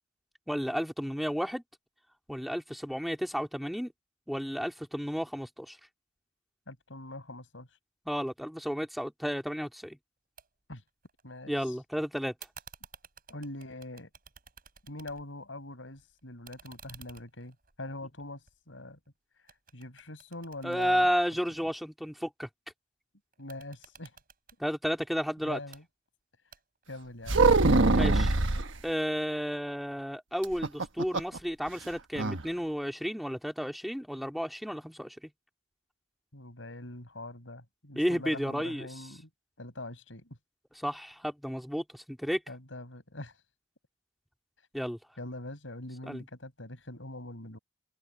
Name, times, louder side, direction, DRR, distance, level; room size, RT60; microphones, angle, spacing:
voice 1, 0.5-1.6 2.3-3.9 4.3-5.8 8.1-10.0 11.5-12.3 20.6-22.5 24.6-25.6 27.9-28.3 28.8-35.2 38.0-38.9 40.8-42.4 44.7-45.0 46.0-46.2, equal, ahead, 2.4 m, -32 dB
voice 2, 6.7-7.7 10.7-10.8 11.2-11.7 13.3-14.1 14.8-19.0 19.7-21.1 23.4-24.1 25.4-25.8 26.9-27.5 36.3-39.3 39.6-40.4 42.5-43.3 45.2-47.6, left 1 dB, 80° left, 6.6 m, -43 dB
sound 1, 10.4-10.5 10.8-11.6 12.4-15.5 15.8-19.1 19.5-21.7 23.3-24.6 25.5-25.8 26.5-27.0, right 7 dB, 50° right, 6.2 m, -54 dB
sound 2, 27.3-28.7 30.4-31.4 31.7-31.8 32.2-32.4, right 3 dB, 75° right, 1.2 m, -23 dB
head